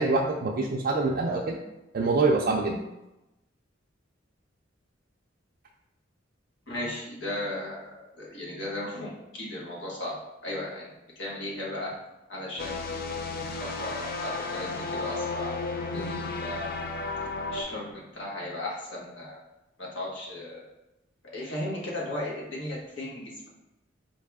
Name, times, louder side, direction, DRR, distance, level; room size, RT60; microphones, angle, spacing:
voice 1, 0.0-1.6 1.9-2.8, right 3 dB, 50° right, -1 dB, 0.4 m, -25 dB
voice 2, 6.7-10.1 10.4-10.9 11.2-11.9 12.3-13.1 13.6-15.5 15.9-16.8 17.5-19.4 19.8-20.6 21.3-23.5, left 1 dB, 70° left, -4 dB, 1.3 m, -36 dB
sound 1, 12.6-17.6, left 3 dB, 50° left, 0.5 m, -33 dB
4.6 x 2.9 x 3.4 m, 0.96 s
head